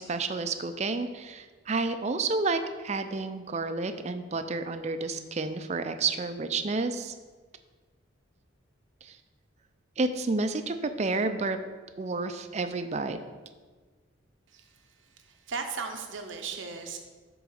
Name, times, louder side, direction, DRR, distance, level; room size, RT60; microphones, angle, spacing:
voice 1, 0.0-7.1 9.0-9.2 10.0-11.6 12.0-13.2, right 3 dB, 35° right, 9 dB, 0.4 m, -30 dB
voice 2, 14.5-17.0, right 5 dB, 70° right, 5 dB, 0.7 m, -37 dB
8.3 x 3.9 x 6.4 m, 1.4 s
head